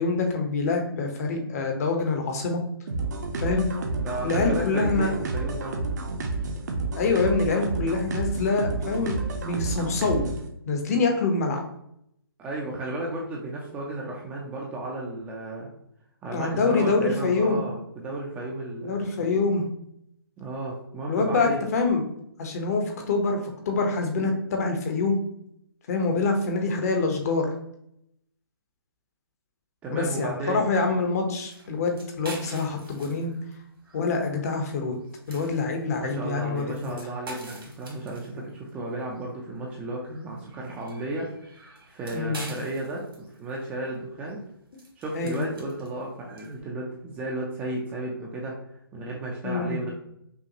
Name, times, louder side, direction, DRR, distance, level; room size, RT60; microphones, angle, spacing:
voice 1, 0.0-2.6 3.4-3.7 4.2-5.1 6.9-10.2 10.7-11.6 16.3-17.6 18.8-19.6 21.1-22.0 22.4-23.4 23.7-25.2 25.9-27.5 29.9-33.3 33.9-35.0 35.3-37.0 42.1-42.4 45.1-45.4 49.4-49.8, left 3 dB, 40° left, 4 dB, 0.8 m, -25 dB
sound 1, 2.9-10.5, right 3 dB, 45° right, 0.7 m, -30 dB
voice 2, 4.0-5.9 12.4-15.7 16.2-19.0 20.4-21.6 29.8-30.6 36.0-44.4 45.0-48.6 48.9-49.9, right 2 dB, 10° right, -2 dB, 0.5 m, -33 dB
sound 2, 31.3-46.6, right 1 dB, 70° right, 1.5 m, -46 dB
5.7 x 2.3 x 2.8 m, 0.74 s
figure-of-eight pair, 145°, 13 cm